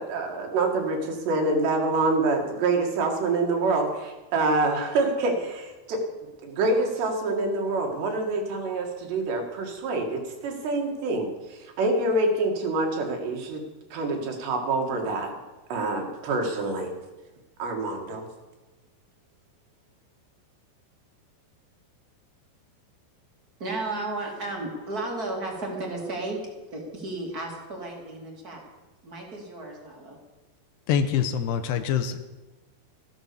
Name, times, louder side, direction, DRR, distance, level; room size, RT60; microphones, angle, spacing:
voice 1, 0.0-6.0 6.4-13.6 13.9-15.4 15.7-16.9 17.6-18.3, right 2 dB, 75° right, 2 dB, 4.2 m, -26 dB
voice 2, 23.6-28.6 29.0-30.2, right 2 dB, 25° right, 0 dB, 2.4 m, -34 dB
voice 3, 30.9-32.2, left 8 dB, 80° left, 9 dB, 2.9 m, -25 dB
14.5 x 11.0 x 7.0 m, 1.1 s
omnidirectional pair, 5.0 m